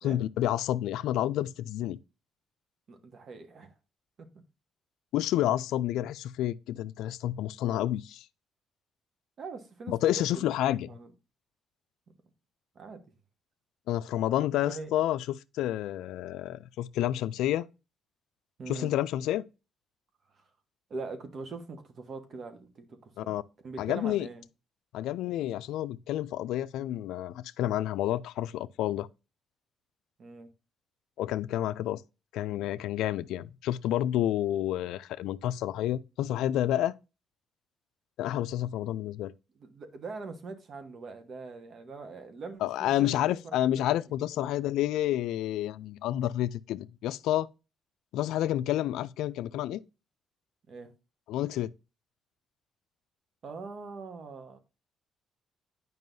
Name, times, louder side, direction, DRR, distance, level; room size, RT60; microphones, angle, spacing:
voice 1, 0.0-2.0 5.1-8.2 9.9-10.9 13.9-15.2 15.5-17.7 18.7-19.4 23.2-23.4 23.8-24.3 24.9-29.1 31.2-32.0 32.3-37.0 38.2-39.3 42.6-47.5 48.1-49.8 51.3-51.7, left 13 dB, 90° left, 0.3 m, -29 dB
voice 2, 2.9-3.8 4.2-4.3 9.4-10.5 10.9-11.1 12.7-13.0 14.6-14.9 18.6-18.9 20.3-20.4 20.9-24.4 30.2-30.5 39.5-43.9 50.7-50.9 53.4-54.6, right 4 dB, 55° right, 1.3 m, -42 dB
9.3 x 5.4 x 2.7 m
cardioid pair, 90°, 0 cm